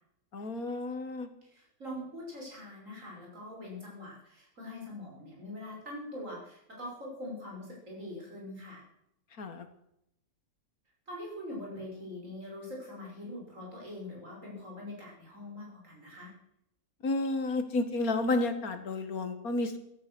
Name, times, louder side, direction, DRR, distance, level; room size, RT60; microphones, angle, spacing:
voice 1, 0.3-1.3 9.4-9.7 17.0-19.8, left 2 dB, 90° left, 9 dB, 2.1 m, -31 dB
voice 2, 1.4-8.8 11.1-16.3, left 1 dB, 65° right, -2 dB, 6.1 m, -43 dB
15.0 x 13.0 x 6.1 m, 0.79 s
omnidirectional pair, 1.5 m